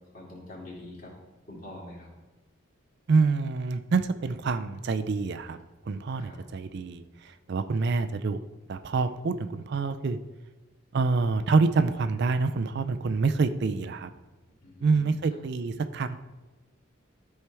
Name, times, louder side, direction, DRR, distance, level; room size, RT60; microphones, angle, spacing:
voice 1, 0.1-1.1 1.5-2.1 6.2-6.4 14.6-15.4, left 1 dB, 45° left, -4 dB, 2.6 m, -45 dB
voice 2, 3.1-5.6 5.8-8.4 8.7-10.2 10.9-14.1 14.8-16.2, right 4 dB, 55° right, 10 dB, 0.4 m, -26 dB
13.0 x 4.5 x 3.4 m, 1.2 s
head